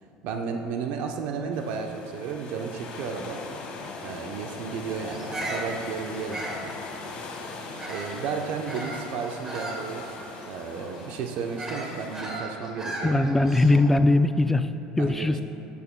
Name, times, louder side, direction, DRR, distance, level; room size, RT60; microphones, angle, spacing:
voice 1, 0.2-3.4 4.0-6.4 7.9-10.1 10.5-13.2 15.0-15.4, right 5 dB, 70° right, 4 dB, 0.7 m, -33 dB
sound 1, 1.5-12.2, left 3 dB, 50° left, 1.5 m, -40 dB
Bird vocalization bird call bird song, 5.1-8.2 8.7-14.0, right 1 dB, 20° right, 1.4 m, -37 dB
voice 2, 13.0-14.7 15.0-15.4, left 2 dB, 10° left, 10 dB, 0.3 m, -20 dB
13.0 x 8.4 x 2.2 m, 2.7 s
supercardioid pair, 115°, 3 cm